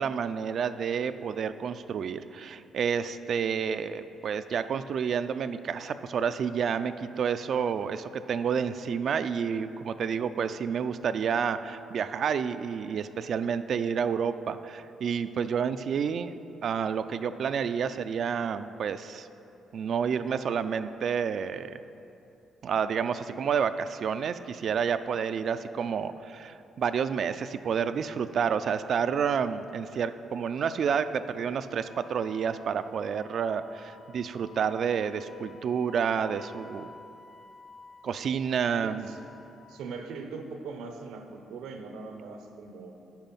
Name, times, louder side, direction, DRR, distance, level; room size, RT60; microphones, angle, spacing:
voice 1, 0.0-16.3 16.6-19.3 19.7-21.8 22.6-36.9 38.0-39.1, right 7 dB, 60° right, 11 dB, 0.3 m, -29 dB
Wind instrument woodwind instrument, 31.8-40.1, left 4 dB, 40° left, 0.6 m, -52 dB
voice 2, 38.8-39.2 39.7-42.9, right 4 dB, 85° right, 5 dB, 0.7 m, -40 dB
9.0 x 5.5 x 5.4 m, 2.8 s
cardioid pair, 90°, 0 cm